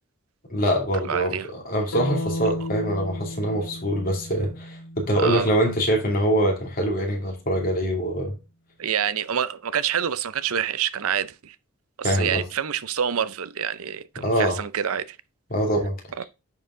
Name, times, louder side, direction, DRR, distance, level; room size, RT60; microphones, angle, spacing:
voice 1, 0.5-8.4 12.0-12.4 14.2-14.6 15.5-16.0, right 1 dB, 40° left, 2.5 m, -24 dB
voice 2, 1.1-1.5 5.2-5.5 8.8-11.6 12.0-15.2 16.2-16.3, right 8 dB, 75° right, 0.6 m, -27 dB
sound 1, 1.9-6.0, left 1 dB, 75° left, 0.7 m, -34 dB
10.0 x 4.8 x 3.7 m
head